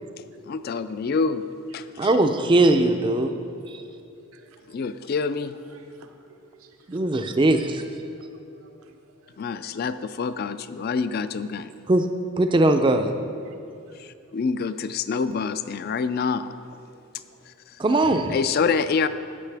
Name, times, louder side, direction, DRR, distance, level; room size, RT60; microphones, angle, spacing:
voice 1, 0.5-1.5 1.7-2.1 4.7-5.5 9.4-11.7 14.0-16.5 17.5-17.8 18.3-19.1, left 5 dB, 45° left, 12 dB, 0.3 m, -26 dB
voice 2, 2.0-3.3 3.7-3.8 6.9-7.8 11.9-12.0 12.4-13.1 17.8-18.2, right 2 dB, 20° right, 7 dB, 0.4 m, -20 dB
voice 3, 3.2-3.9 4.3-4.7 5.7-7.0 8.2-9.3 13.4-14.3 16.9-17.0 17.3-17.4, right 3 dB, 80° right, 5 dB, 0.9 m, -56 dB
14.0 x 8.4 x 3.4 m, 2.5 s
head